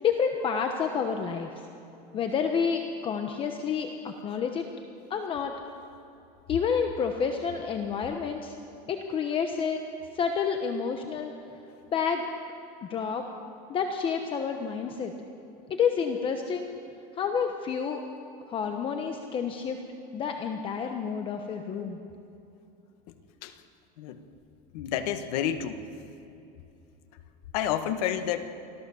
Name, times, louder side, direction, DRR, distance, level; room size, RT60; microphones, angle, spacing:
voice 1, 0.0-1.5 2.1-4.6 5.1-5.5 6.5-8.5 8.9-9.8 10.1-11.3 11.9-12.3 12.9-13.2 13.7-15.1 15.7-16.7 17.2-18.0 18.5-19.8 20.1-22.0, left 6 dB, 25° left, 5 dB, 1.0 m, -29 dB
voice 2, 24.7-25.8 27.5-28.5, left 10 dB, 80° left, 8 dB, 1.6 m, -29 dB
25.0 x 15.5 x 7.1 m, 2.8 s
cardioid pair, 165°, 19 cm